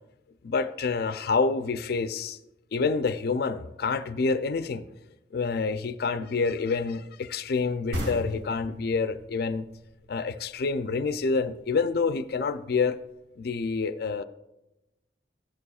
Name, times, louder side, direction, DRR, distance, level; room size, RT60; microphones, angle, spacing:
voice 1, 0.4-2.4 2.7-4.8 5.3-9.7 10.1-13.0 13.4-14.2, left 4 dB, 60° left, 11 dB, 0.4 m, -27 dB
sound 1, 7.9-11.3, equal, 80° right, 2.1 m, -37 dB
13.0 x 11.0 x 2.3 m, 0.94 s
head